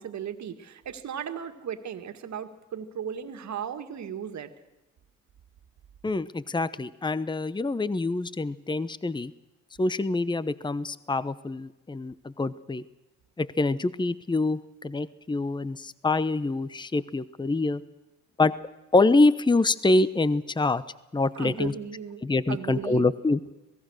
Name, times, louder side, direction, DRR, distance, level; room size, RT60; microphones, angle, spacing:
voice 1, 0.0-4.5 21.3-23.1, right 8 dB, 65° right, 8 dB, 2.1 m, -36 dB
voice 2, 6.0-9.3 9.8-12.8 13.4-17.8 18.4-18.5 18.9-20.8 21.1-21.7 22.2-23.4, left 2 dB, 15° left, 16 dB, 0.9 m, -25 dB
26.5 x 18.5 x 6.5 m, 1.0 s
hypercardioid pair, 50°, 31 cm